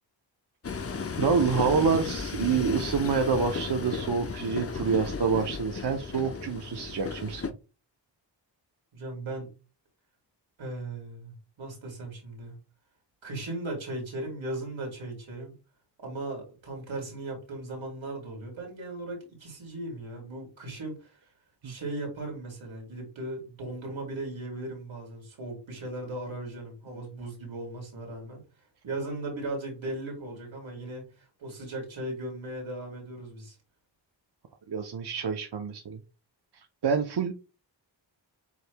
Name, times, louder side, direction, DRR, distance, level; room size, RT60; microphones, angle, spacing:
Train, 0.6-7.5, left 5 dB, 30° left, 0.7 m, -34 dB
voice 1, 1.2-7.4 21.6-21.7 34.7-36.0 36.8-37.3, right 5 dB, 60° right, 0.8 m, -27 dB
voice 2, 8.9-9.5 10.6-12.6 13.2-15.5 16.0-21.2 21.6-28.4 28.8-33.6, right 2 dB, 80° right, 2.4 m, -37 dB
7.2 x 3.1 x 2.2 m
cardioid pair, 45°, 46 cm